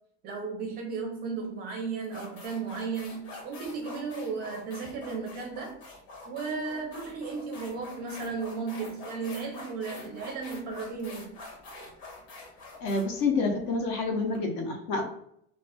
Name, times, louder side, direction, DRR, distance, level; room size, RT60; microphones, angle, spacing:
voice 1, 0.2-5.8 6.3-11.4, right 4 dB, 30° right, 2 dB, 0.5 m, -35 dB
sound 1, 1.4-1.6 2.0-14.4, left 2 dB, 75° left, 1.2 m, -45 dB
voice 2, 12.8-15.0, left 3 dB, 50° left, 3 dB, 0.6 m, -28 dB
2.5 x 2.2 x 3.5 m, 0.69 s
cardioid pair, 170°, 32 cm